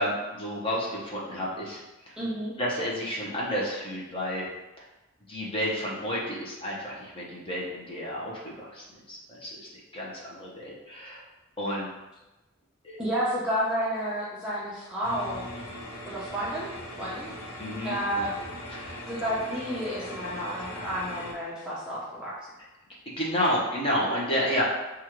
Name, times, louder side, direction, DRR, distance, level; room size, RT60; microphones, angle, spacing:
voice 1, 0.0-1.8 2.6-4.4 5.3-11.2 11.6-11.9 12.8-13.0 17.6-17.9 18.7-19.0 23.2-24.6, equal, 25° left, -5 dB, 0.9 m, -31 dB
voice 2, 2.2-2.5 13.0-15.5 16.1-16.7 17.0-17.3 17.8-18.3 19.1-22.5, equal, 5° right, -8 dB, 0.6 m, -31 dB
sound 1, 15.0-21.3, equal, 75° left, 0.8 m, -40 dB
6.2 x 2.5 x 3.0 m, 1.0 s
head